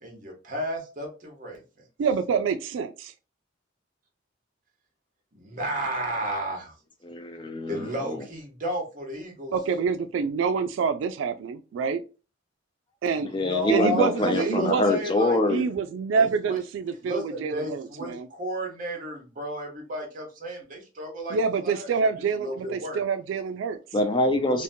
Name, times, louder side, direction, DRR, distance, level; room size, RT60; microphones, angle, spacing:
voice 1, 0.0-1.6 5.3-6.7 7.7-9.5 13.1-15.6 16.2-16.6 17.0-23.0, equal, 45° right, 0.9 m, -33 dB
voice 2, 2.0-3.1 9.5-12.0 13.0-13.3 13.7-14.8 15.5-17.8 18.1-18.3 21.3-23.8, right 5 dB, 80° right, 0.3 m, -26 dB
voice 3, 7.0-8.2 13.2-15.6 23.9-24.6, left 1 dB, 25° left, 0.3 m, -25 dB
2.7 x 2.1 x 2.6 m
head